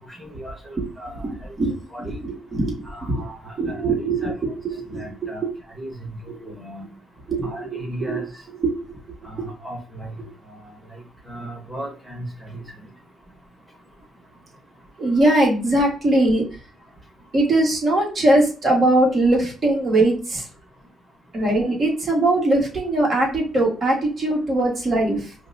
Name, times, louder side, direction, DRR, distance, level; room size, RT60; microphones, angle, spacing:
voice 1, 0.0-1.5 1.9-2.2 2.8-4.3 4.9-5.4 5.7-6.8 7.4-8.4 9.2-10.2 10.5-11.0 11.3-12.6, right 1 dB, 10° right, 0 dB, 1.3 m, -36 dB
voice 2, 1.6-2.7 3.1-3.2 3.6-4.3 4.6-5.5 6.4-6.5 7.3-8.2 8.6-8.7 15.0-16.4 17.3-20.5 21.3-25.3, right 2 dB, 40° right, -1 dB, 1.4 m, -21 dB
4.9 x 2.1 x 2.6 m, 0.38 s
cardioid pair, 90°, 0 cm